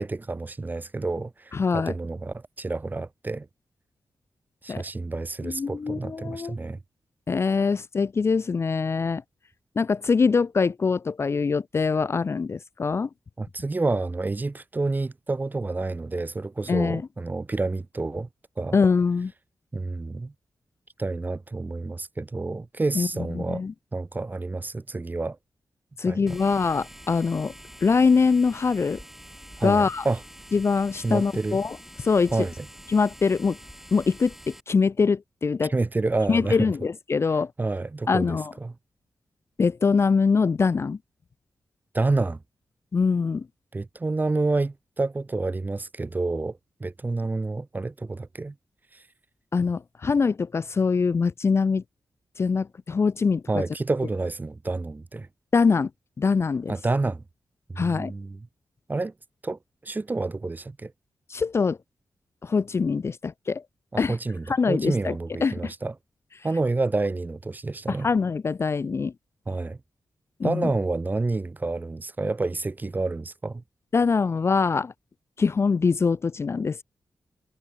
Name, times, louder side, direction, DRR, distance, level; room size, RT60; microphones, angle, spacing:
voice 1, 0.0-3.5 4.6-6.8 13.4-18.3 18.6-18.8 19.7-20.3 21.0-23.6 23.9-25.4 26.0-26.4 29.6-30.2 31.0-31.6 32.3-32.7 35.7-36.7 37.6-38.7 41.9-42.4 43.7-48.5 48.9-49.0 53.5-55.3 56.7-57.2 57.7-58.4 58.9-59.1 59.4-60.9 63.9-65.9 66.4-68.1 69.5-69.8 70.4-73.6, right 3 dB, 25° right, 0.8 m, -29 dB
voice 2, 1.5-1.9 4.7-4.8 5.4-6.6 7.3-9.2 9.8-13.1 16.7-17.0 18.7-19.3 22.9-23.1 23.3-23.7 26.0-27.5 27.8-29.0 29.6-30.1 30.5-31.8 32.0-32.3 32.9-33.6 33.9-35.7 36.3-37.5 38.1-38.5 39.6-41.0 42.9-43.5 49.5-51.8 52.4-53.6 55.5-55.9 56.2-56.7 57.8-58.1 61.3-61.8 62.4-63.6 64.0-64.2 64.5-65.2 65.4-65.7 67.9-69.1 70.4-70.7 73.9-74.9 75.4-76.8, left 5 dB, 40° left, 0.4 m, -23 dB
sound 1, 26.3-34.6, equal, 5° right, 2.6 m, -46 dB
cardioid pair, 70°, 7 cm